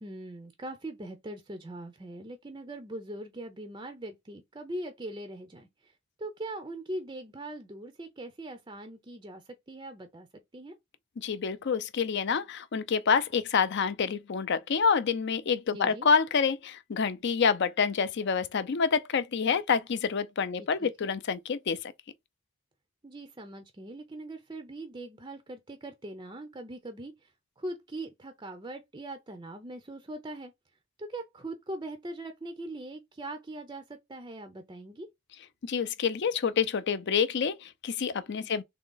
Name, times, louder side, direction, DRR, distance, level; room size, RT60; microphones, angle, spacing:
voice 1, 0.0-5.9 6.2-10.3 10.5-10.8 15.7-16.1 20.8-21.1 23.0-27.3 27.6-30.5 31.0-35.1 38.4-38.6, right 1 dB, 20° right, 0.5 m, -41 dB
voice 2, 11.2-21.9 35.6-38.6, left 6 dB, 50° left, 0.4 m, -27 dB
3.6 x 2.9 x 3.8 m
head